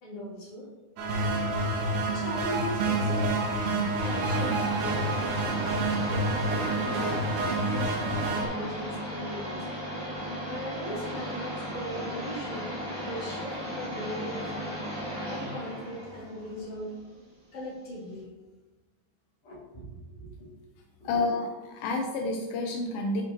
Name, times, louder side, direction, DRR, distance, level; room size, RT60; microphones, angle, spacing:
voice 1, 0.0-0.7 1.9-3.3 4.0-5.2 5.6-7.3 7.6-9.6 10.2-12.7 13.0-14.8 15.2-17.0 17.5-18.3 19.4-20.5 21.0-21.4, equal, 40° left, -7 dB, 2.3 m, -39 dB
sound 1, 1.0-8.5, right 2 dB, 70° right, 2.6 m, -28 dB
sound 2, 4.0-17.4, equal, 20° right, 1.1 m, -36 dB
voice 2, 21.0-23.2, left 3 dB, 90° left, 1 dB, 2.1 m, -29 dB
10.5 x 4.4 x 2.9 m, 1.2 s
omnidirectional pair, 5.1 m